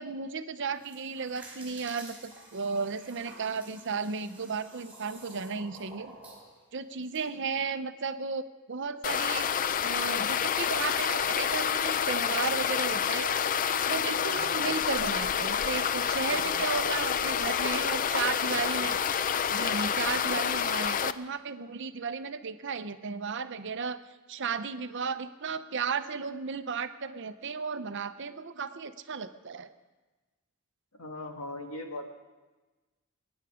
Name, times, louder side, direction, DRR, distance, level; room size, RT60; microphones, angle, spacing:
voice 1, 0.0-6.2 6.7-8.4 8.7-9.5 9.8-13.3 13.9-19.0 19.5-24.0 24.3-29.7, right 5 dB, 55° right, 11 dB, 0.7 m, -34 dB
sound 1, 0.6-7.2, right 2 dB, 5° right, 4.7 m, -50 dB
sound 2, 9.0-21.1, left 8 dB, 40° left, 0.4 m, -28 dB
voice 2, 14.2-14.8 16.3-17.5 17.8-18.3 31.0-32.1, left 2 dB, 75° left, 3 dB, 1.9 m, -42 dB
22.5 x 9.8 x 5.0 m, 1.2 s
head